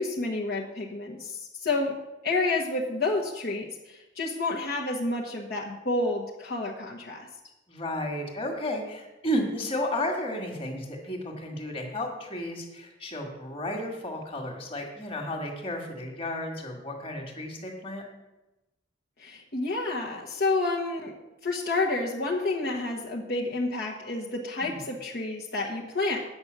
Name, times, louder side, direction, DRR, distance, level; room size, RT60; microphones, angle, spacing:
voice 1, 0.0-1.9 2.2-7.3 19.2-21.1 21.4-26.2, left 2 dB, 50° left, -3 dB, 1.1 m, -29 dB
voice 2, 7.7-18.0 24.7-24.9, left 1 dB, 30° left, 1 dB, 1.8 m, -33 dB
8.7 x 6.0 x 8.0 m, 1.0 s
head